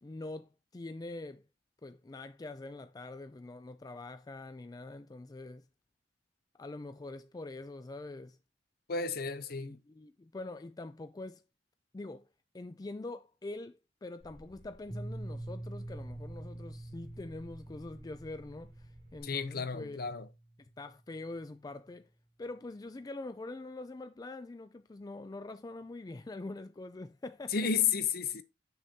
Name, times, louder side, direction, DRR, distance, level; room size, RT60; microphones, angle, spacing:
voice 1, 0.0-1.4 1.8-5.6 6.6-8.4 9.6-11.4 11.9-12.3 12.5-20.0 20.6-22.1 22.4-27.5, left 2 dB, 20° left, 0.4 m, -44 dB
voice 2, 8.9-9.8 19.2-20.3 27.5-28.4, left 6 dB, 55° left, 0.7 m, -32 dB
sound 1, 14.2-19.2, equal, 45° right, 1.8 m, -58 dB
Piano, 14.9-20.5, right 1 dB, 90° right, 2.7 m, -45 dB
6.7 x 6.6 x 2.7 m
head